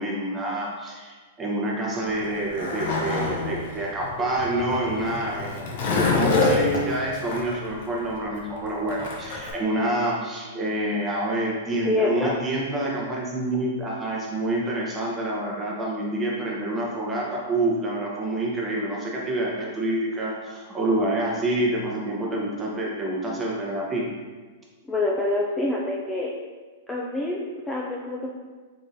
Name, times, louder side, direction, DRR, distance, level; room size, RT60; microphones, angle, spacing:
voice 1, 0.0-24.1, right 1 dB, 15° right, -4 dB, 0.9 m, -27 dB
Skateboard, 2.0-9.5, left 3 dB, 60° left, 0.8 m, -27 dB
voice 2, 11.8-12.4 24.9-26.3 26.9-28.3, left 2 dB, 10° left, -3 dB, 0.4 m, -26 dB
3.8 x 3.6 x 2.7 m, 1.4 s
hypercardioid pair, 140°, 0 cm